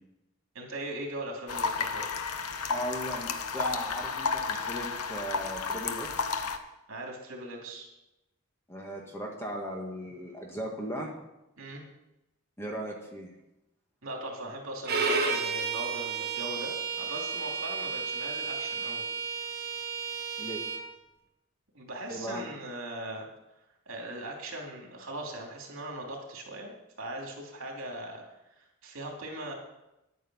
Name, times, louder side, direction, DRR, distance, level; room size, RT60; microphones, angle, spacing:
voice 1, 0.5-2.1 6.9-7.9 11.6-11.8 14.0-19.0 21.7-23.3 23.9-26.7 27.0-28.2 28.6-29.5, right 1 dB, 65° right, 0 dB, 2.9 m, -39 dB
sound 1, 1.5-6.6, left 5 dB, 85° left, 1.0 m, -32 dB
voice 2, 2.7-6.4 8.7-11.1 12.6-13.3 20.4-20.6 22.1-22.4, equal, 10° left, 0 dB, 1.8 m, -37 dB
Bowed string instrument, 14.8-20.8, right 5 dB, 45° right, 1.5 m, -32 dB
10.5 x 9.3 x 6.3 m, 0.92 s
head